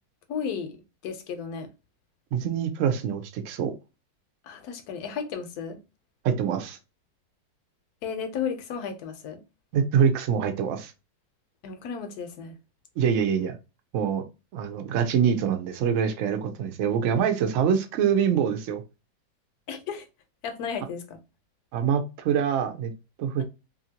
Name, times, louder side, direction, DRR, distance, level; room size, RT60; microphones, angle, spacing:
voice 1, 0.3-0.8 1.0-1.7 4.4-5.8 8.0-9.4 11.6-12.5 19.7-20.0 20.4-21.2, left 6 dB, 70° left, 1.0 m, -33 dB
voice 2, 2.3-3.7 6.2-6.8 9.7-10.9 13.0-13.6 13.9-14.2 14.5-18.8 21.7-22.9 23.2-23.4, right 7 dB, 70° right, 0.7 m, -25 dB
2.8 x 2.6 x 2.7 m
omnidirectional pair, 1.9 m